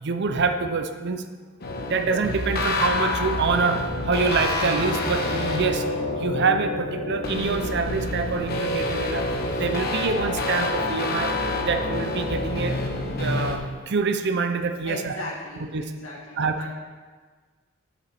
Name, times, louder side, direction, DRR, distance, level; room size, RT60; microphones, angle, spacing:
voice 1, 0.0-1.3 1.8-5.9 6.1-11.3 11.6-12.8 13.2-15.1 15.7-15.8 16.4-16.7, right 4 dB, 55° right, 7 dB, 0.6 m, -26 dB
sound 1, 1.6-13.6, left 2 dB, 50° left, 1.1 m, -27 dB
voice 2, 14.8-16.7, left 2 dB, 65° left, -4 dB, 2.4 m, -37 dB
10.0 x 7.1 x 4.3 m, 1.4 s
head